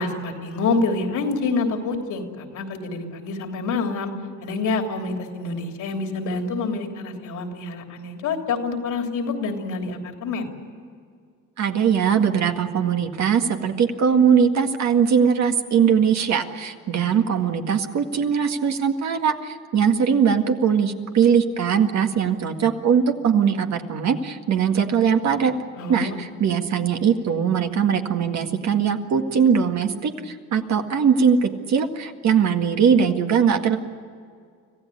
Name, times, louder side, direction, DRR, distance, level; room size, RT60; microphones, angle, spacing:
voice 1, 0.0-4.1 4.4-10.5 25.8-26.2, left 3 dB, 85° left, 3 dB, 3.2 m, -27 dB
voice 2, 11.6-25.5 25.9-33.8, right 7 dB, 65° right, 5 dB, 2.0 m, -20 dB
26.0 x 15.5 x 9.9 m, 2.1 s
cardioid pair, 90°, 30 cm